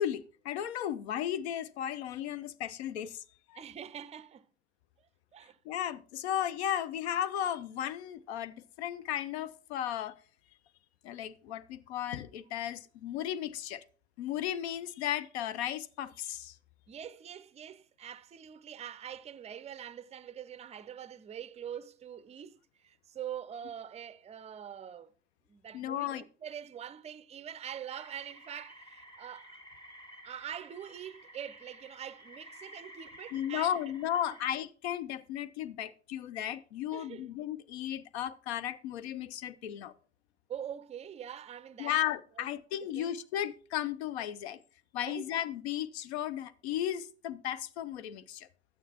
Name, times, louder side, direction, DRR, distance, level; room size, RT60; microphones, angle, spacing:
voice 1, 0.0-3.2 3.5-3.6 5.6-10.2 11.0-13.8 14.2-16.6 25.7-26.2 33.3-39.9 41.8-44.6 44.9-48.5, left 11 dB, 75° left, 0.6 m, -35 dB
voice 2, 3.6-4.5 5.0-5.6 16.9-25.1 25.5-29.6 30.2-33.9 34.3-34.4 36.9-37.3 40.5-42.0 42.4-42.5 42.8-43.1 45.0-45.3, right 9 dB, 20° right, 0.5 m, -44 dB
sound 1, 27.9-34.5, equal, 15° left, 1.7 m, -53 dB
12.0 x 9.0 x 2.8 m
figure-of-eight pair, 60°, 33 cm